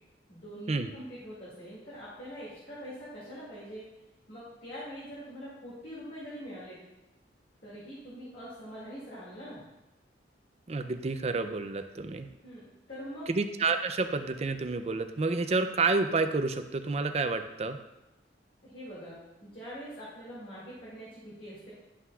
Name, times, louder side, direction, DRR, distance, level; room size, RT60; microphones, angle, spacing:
voice 1, 0.3-3.8 4.3-6.8 7.6-9.6 12.4-12.6 12.9-13.3 18.6-21.7, equal, 55° left, -9 dB, 2.4 m, -44 dB
voice 2, 10.7-12.3 13.3-17.8, right 3 dB, 35° right, 8 dB, 0.5 m, -29 dB
11.0 x 5.7 x 2.4 m, 0.96 s
head